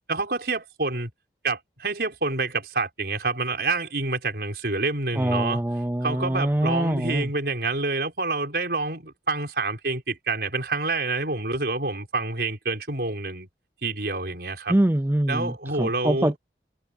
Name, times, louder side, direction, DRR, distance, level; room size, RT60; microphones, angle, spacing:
voice 1, 0.1-1.1 1.4-5.6 6.0-13.5 13.8-14.7 15.3-16.3, right 3 dB, 65° right, 4.5 m, -27 dB
voice 2, 5.1-7.3 14.7-16.4, right 1 dB, 10° right, 0.4 m, -24 dB
head